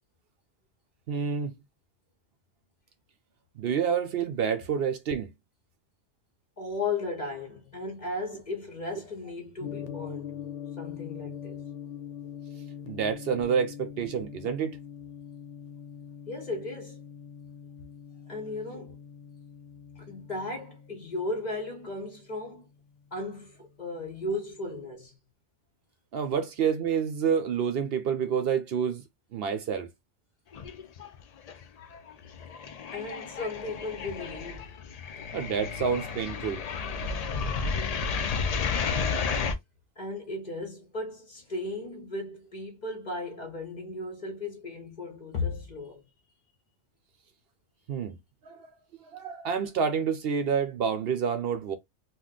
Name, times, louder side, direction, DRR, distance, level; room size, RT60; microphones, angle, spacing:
voice 1, 1.1-1.5 3.6-5.3 12.9-14.8 26.1-29.0 29.3-29.9 35.3-36.6 47.9-48.2 48.5-48.7 49.0-51.8, right 7 dB, 65° right, 0.7 m, -28 dB
voice 2, 6.6-10.4 10.8-11.6 16.3-17.0 18.3-19.0 20.0-22.7 23.1-25.2 32.9-34.7 40.0-46.0, left 2 dB, 45° left, 0.7 m, -36 dB
Gong, 9.6-23.8, left 8 dB, 85° left, 0.9 m, -43 dB
sound 1, 30.5-31.2 31.5-39.6, left 5 dB, 65° left, 0.3 m, -32 dB
2.5 x 2.2 x 3.7 m
omnidirectional pair, 1.2 m